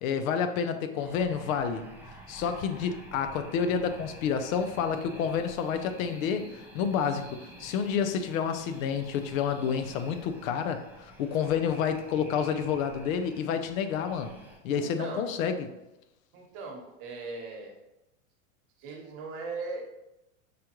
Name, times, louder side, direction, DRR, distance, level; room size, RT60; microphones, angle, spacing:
voice 1, 0.0-1.9 2.3-6.5 6.7-14.3 14.6-15.7, left 7 dB, 75° left, 8 dB, 0.6 m, -29 dB
sound 1, 1.0-14.6, right 1 dB, 5° right, 0.4 m, -49 dB
voice 2, 14.7-15.3 16.3-17.7 18.8-19.9, right 3 dB, 55° right, 1 dB, 1.1 m, -39 dB
5.0 x 2.3 x 2.9 m, 0.92 s
supercardioid pair, 120°, 41 cm